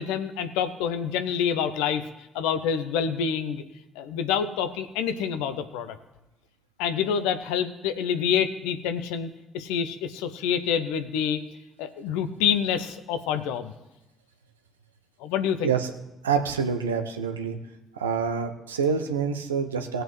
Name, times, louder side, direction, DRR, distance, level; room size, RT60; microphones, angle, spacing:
voice 1, 0.0-2.1 2.3-3.6 4.0-6.0 6.8-9.3 9.5-11.4 11.8-13.7 15.2-15.7, left 8 dB, 75° left, 10 dB, 0.7 m, -27 dB
voice 2, 16.2-17.6 17.9-20.0, right 6 dB, 85° right, 6 dB, 0.7 m, -26 dB
19.0 x 7.8 x 3.2 m, 0.92 s
figure-of-eight pair, 45°, 0 cm